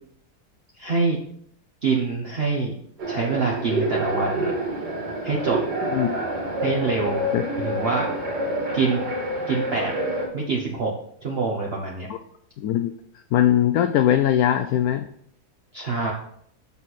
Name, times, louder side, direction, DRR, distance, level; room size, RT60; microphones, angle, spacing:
voice 1, 0.8-1.2 1.8-2.7 3.1-4.5 5.2-5.6 6.6-7.3 7.6-8.1 8.7-9.0 9.5-9.9 10.3-10.9 11.2-12.1 15.7-16.1, right 4 dB, 45° right, -1 dB, 1.1 m, -25 dB
sound 1, 3.0-10.3, right 1 dB, 90° right, 2.5 m, -27 dB
voice 2, 5.9-6.2 7.3-7.4 12.1-12.2 12.6-12.9 13.3-15.1, left 11 dB, 75° left, 8 dB, 1.0 m, -20 dB
7.3 x 6.4 x 4.1 m, 0.67 s
omnidirectional pair, 1.7 m